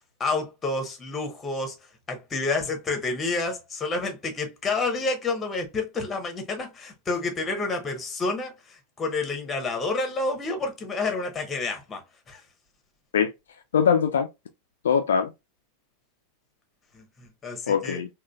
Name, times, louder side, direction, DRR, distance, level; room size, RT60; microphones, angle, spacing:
voice 1, 0.2-1.8 2.1-12.0 12.3-12.4 16.9-18.0, left 3 dB, 20° left, 1.0 m, -29 dB
voice 2, 13.1-14.3 14.8-15.3 17.7-18.1, left 7 dB, 65° left, 0.4 m, -23 dB
3.7 x 2.4 x 2.3 m
figure-of-eight pair, 90°, 0 cm